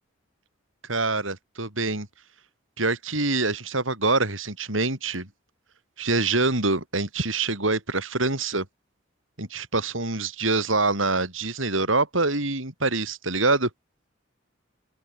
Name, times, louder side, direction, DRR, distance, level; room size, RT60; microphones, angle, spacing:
voice 1, 0.9-2.1 2.8-5.3 6.0-8.7 9.4-13.7, right 3 dB, 75° right, 7.1 m, -25 dB
open air
head